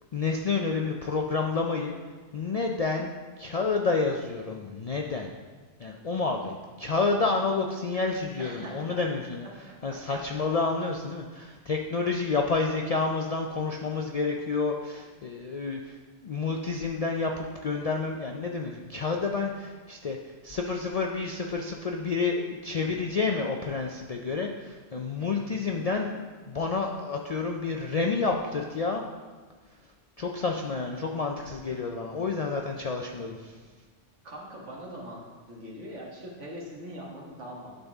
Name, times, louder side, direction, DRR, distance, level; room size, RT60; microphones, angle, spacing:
voice 1, 0.1-1.9 2.3-3.1 3.4-5.3 5.8-9.5 9.8-16.0 16.2-29.0 30.2-33.6, left 4 dB, 60° left, 1 dB, 0.4 m, -29 dB
voice 2, 8.4-9.0 9.7-10.2 11.6-11.7 12.6-12.7 22.8-23.1 25.2-25.4 34.2-35.2 35.5-37.8, equal, 85° right, -2 dB, 1.8 m, -42 dB
11.0 x 4.1 x 3.5 m, 1.4 s
omnidirectional pair, 1.2 m